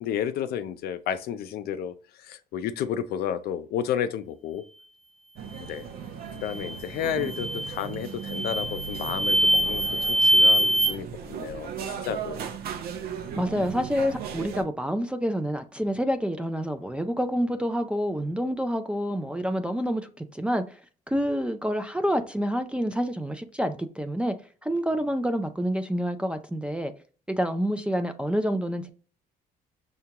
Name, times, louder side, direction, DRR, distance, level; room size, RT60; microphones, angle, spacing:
voice 1, 0.0-4.6 5.6-5.8 6.3-12.5, left 9 dB, 65° left, 0.4 m, -32 dB
sound 1, 5.4-14.6, right 7 dB, 65° right, 0.6 m, -37 dB
sound 2, 6.5-6.8 7.2-7.8 8.3-10.9, equal, 35° right, 0.9 m, -23 dB
voice 2, 13.4-20.8 21.1-24.3 24.6-26.9 27.3-28.9, equal, 5° right, 0.3 m, -28 dB
5.6 x 2.2 x 2.8 m
cardioid pair, 110°, 17 cm